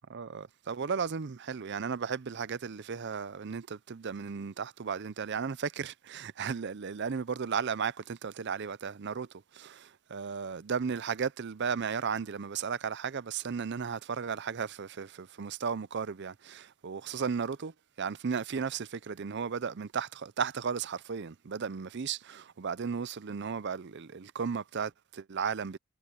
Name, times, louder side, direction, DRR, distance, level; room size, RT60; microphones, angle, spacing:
voice 1, 0.1-9.3 9.5-17.7 18.0-25.8, right 6 dB, 50° right, 0.5 m, -35 dB
head